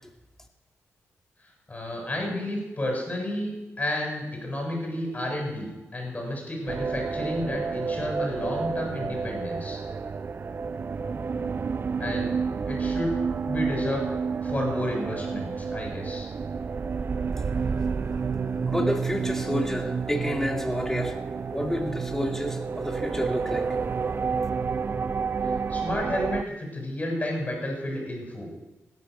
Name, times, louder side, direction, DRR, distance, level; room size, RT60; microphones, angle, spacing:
voice 1, 1.7-9.8 12.0-12.4 12.7-13.2 13.5-14.1 14.4-16.3 25.4-28.5, left 1 dB, 30° left, 1 dB, 6.9 m, -31 dB
sound 1, 6.7-26.4, right 5 dB, 40° right, 0.5 m, -30 dB
voice 2, 18.7-21.2 21.5-23.8, left 1 dB, 5° left, 2 dB, 2.3 m, -29 dB
16.5 x 10.5 x 6.6 m, 1.0 s
cardioid pair, 75°, 5 cm